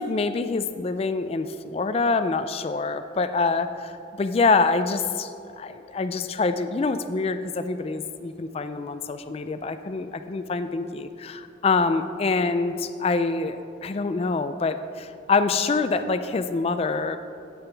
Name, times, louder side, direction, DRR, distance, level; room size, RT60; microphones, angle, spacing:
voice 1, 0.0-17.2, left 4 dB, 30° left, 10 dB, 0.3 m, -25 dB
12.5 x 8.6 x 3.4 m, 2.7 s
head